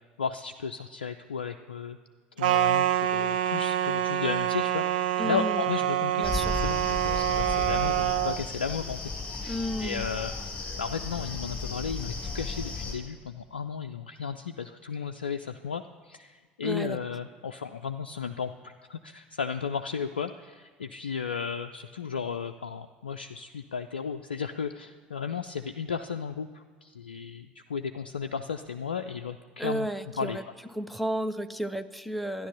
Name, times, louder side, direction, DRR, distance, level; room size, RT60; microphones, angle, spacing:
voice 1, 0.0-2.0 2.4-9.0 9.3-10.3 10.8-29.9 30.2-30.4, left 6 dB, 75° left, 7 dB, 0.4 m, -34 dB
sound 1, 2.4-8.4, right 12 dB, 65° right, 0.6 m, -26 dB
voice 2, 5.2-5.6 6.2-6.6 9.4-10.1 16.6-17.0 29.6-30.4 30.7-32.5, equal, ahead, 9 dB, 0.7 m, -32 dB
sound 2, 6.2-12.9, left 3 dB, 15° left, 5.2 m, -35 dB
13.0 x 10.5 x 6.7 m, 1.5 s
figure-of-eight pair, 70°, 5 cm